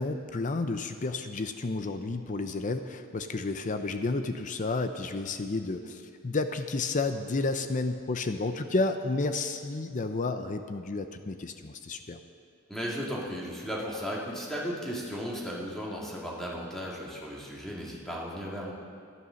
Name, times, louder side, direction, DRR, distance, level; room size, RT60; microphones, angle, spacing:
voice 1, 0.0-12.2, left 3 dB, 35° left, 8 dB, 0.6 m, -31 dB
voice 2, 12.7-18.7, equal, ahead, -5 dB, 2.1 m, -35 dB
12.5 x 11.0 x 6.4 m, 2.2 s
head